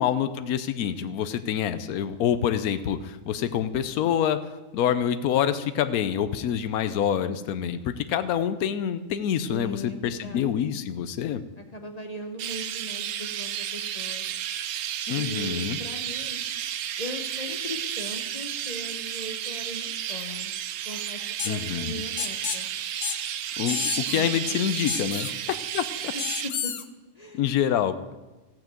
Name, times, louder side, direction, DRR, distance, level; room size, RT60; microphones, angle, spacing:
voice 1, 0.0-4.4 4.7-11.4 15.1-15.8 21.4-22.0 23.6-26.1 27.3-28.0, left 9 dB, 85° left, 12 dB, 1.1 m, -26 dB
voice 2, 9.5-10.8 11.6-14.2 15.1-16.4 17.0-20.5 20.8-22.7 24.1-24.6 26.1-26.7 27.1-27.4, left 1 dB, 35° left, 5 dB, 0.8 m, -39 dB
Chirp tweet, 12.4-26.5, right 10 dB, 80° right, 1.1 m, -32 dB
sound 1, 21.4-21.5 22.2-22.6 23.0-23.2 23.7-24.2 24.9-25.3 26.2-26.8, left 8 dB, 65° left, 0.4 m, -30 dB
14.5 x 6.0 x 7.5 m, 1.2 s
omnidirectional pair, 1.5 m